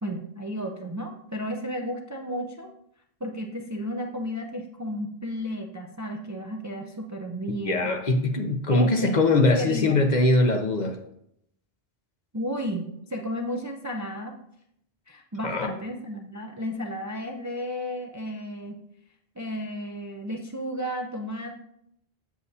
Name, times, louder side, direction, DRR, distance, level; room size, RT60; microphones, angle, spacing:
voice 1, 0.0-2.7 3.2-7.9 8.7-9.2 9.6-10.0 12.3-14.3 15.1-18.8 19.4-21.6, equal, 25° right, 3 dB, 0.4 m, -33 dB
voice 2, 7.6-11.0 15.4-15.7, left 2 dB, 50° left, 5 dB, 0.8 m, -22 dB
7.8 x 7.3 x 2.7 m, 0.75 s
omnidirectional pair, 1.1 m